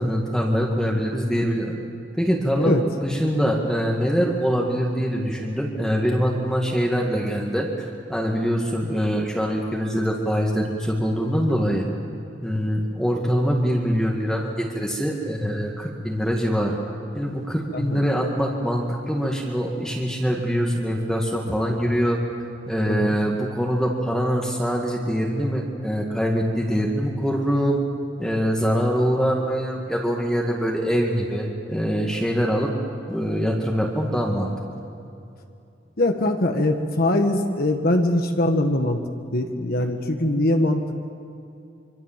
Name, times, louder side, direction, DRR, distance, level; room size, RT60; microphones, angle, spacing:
voice 1, 0.0-1.7 2.2-11.9 12.4-16.8 17.2-22.2 22.7-27.8 28.2-32.7 33.1-34.5, equal, 5° left, -1 dB, 1.9 m, -24 dB
voice 2, 17.7-18.1 22.9-23.1 36.0-39.0 39.3-41.0, left 1 dB, 55° left, 5 dB, 1.5 m, -22 dB
25.5 x 24.5 x 7.5 m, 2.6 s
head